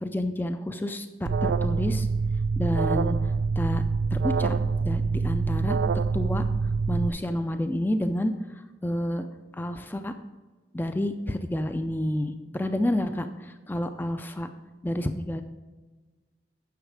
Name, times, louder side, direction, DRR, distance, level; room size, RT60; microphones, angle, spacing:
voice 1, 0.0-2.1 2.6-3.2 3.6-3.8 4.1-5.8 6.1-6.4 6.9-8.3 8.8-9.3 9.6-10.1 10.7-14.5 14.8-15.4, left 1 dB, 10° left, 8 dB, 0.4 m, -29 dB
Alarm, 1.2-7.1, right 4 dB, 90° right, 0.3 m, -25 dB
9.3 x 6.4 x 4.8 m, 1.3 s
head